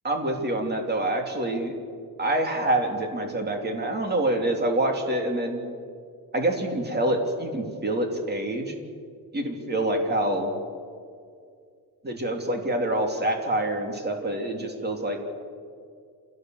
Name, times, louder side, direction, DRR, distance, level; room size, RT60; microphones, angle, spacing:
voice 1, 0.0-1.8 2.2-5.6 6.3-8.7 9.3-10.5 12.0-15.2, right 1 dB, 25° right, 3 dB, 3.2 m, -26 dB
28.0 x 17.0 x 7.9 m, 2.2 s
cardioid pair, 160°, 39 cm